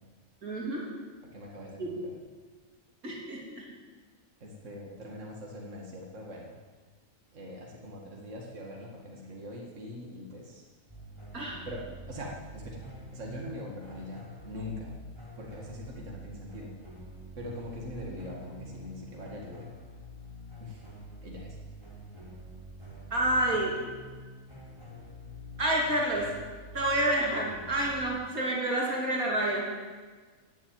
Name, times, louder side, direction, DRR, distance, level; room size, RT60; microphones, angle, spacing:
voice 1, 0.4-0.9 1.8-1.9 3.0-3.7 11.3-11.6 23.1-23.7 25.6-26.3 26.7-29.6, right 1 dB, 80° right, -3 dB, 3.6 m, -28 dB
voice 2, 1.3-2.1 4.4-6.6 7.3-10.6 11.6-12.8 13.1-15.0 15.4-16.7 17.4-19.7 20.6-20.8 21.2-21.6, left 1 dB, 60° right, -1 dB, 2.3 m, -42 dB
sound 1, 10.9-28.1, equal, 20° right, 3.6 m, -46 dB
16.5 x 7.5 x 9.2 m, 1.4 s
omnidirectional pair, 1.5 m